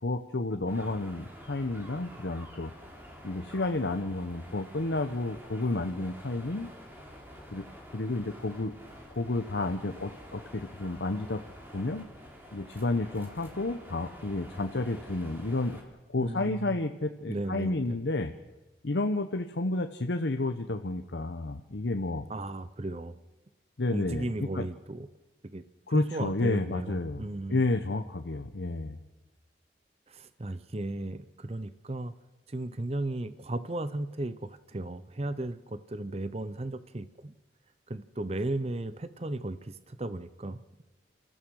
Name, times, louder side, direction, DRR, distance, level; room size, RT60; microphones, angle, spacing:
voice 1, 0.0-2.7 3.2-6.7 7.5-7.6 7.9-8.7 9.1-11.4 11.7-12.1 12.5-15.8 16.1-18.3 18.8-22.2 23.8-24.7 25.9-29.0, left 2 dB, 75° left, 6 dB, 0.9 m, -31 dB
sound 1, 0.7-15.8, equal, 10° right, 3.3 m, -48 dB
voice 2, 16.2-16.8 17.3-18.0 22.3-23.1 23.9-25.1 25.4-25.6 25.9-27.6 30.1-32.1 32.5-37.3 37.9-40.8, right 2 dB, 35° right, 13 dB, 0.7 m, -35 dB
28.0 x 15.0 x 6.4 m, 1.2 s
head